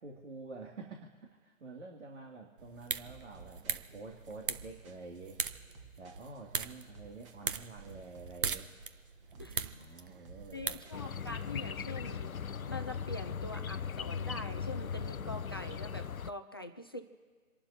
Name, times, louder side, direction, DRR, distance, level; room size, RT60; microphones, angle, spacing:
voice 1, 0.0-5.4 6.0-8.7 9.4-10.8, right 3 dB, 55° right, 0 dB, 2.6 m, -48 dB
sound 1, 2.6-11.4, right 6 dB, 40° right, 1.0 m, -41 dB
sound 2, 3.0-12.6, right 5 dB, 20° right, 1.8 m, -57 dB
voice 2, 9.4-10.0 10.5-17.0, left 1 dB, 20° left, 7 dB, 0.5 m, -44 dB
sound 3, 10.9-16.3, left 7 dB, 85° left, 0.6 m, -38 dB
29.0 x 11.5 x 2.9 m, 1.5 s
figure-of-eight pair, 145°, 41 cm